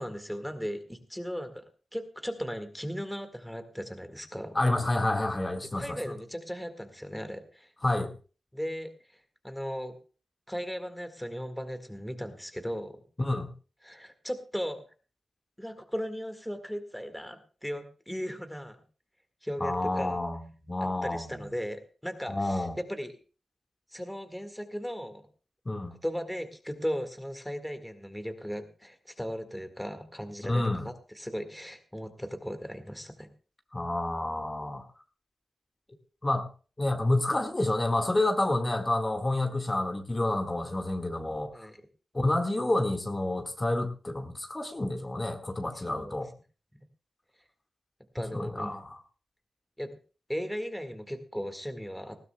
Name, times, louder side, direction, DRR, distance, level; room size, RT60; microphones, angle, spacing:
voice 1, 0.0-1.6 1.9-4.6 5.8-7.7 8.5-9.9 10.5-13.0 13.8-14.8 15.6-18.8 19.4-20.2 20.8-23.1 23.9-25.2 26.0-33.3 41.5-41.8 45.8-46.2 48.1-48.8 49.8-49.9 50.3-52.2, equal, 5° left, 6 dB, 1.8 m, -37 dB
voice 2, 4.5-6.0 7.8-8.1 13.2-13.5 19.6-20.4 20.7-21.2 22.3-22.7 25.6-25.9 30.5-30.8 33.7-34.8 36.2-36.5 36.8-41.5 42.1-46.3 48.3-49.0, left 2 dB, 25° left, 3 dB, 1.7 m, -29 dB
19.5 x 15.0 x 2.3 m, 0.36 s
cardioid pair, 65°, 0 cm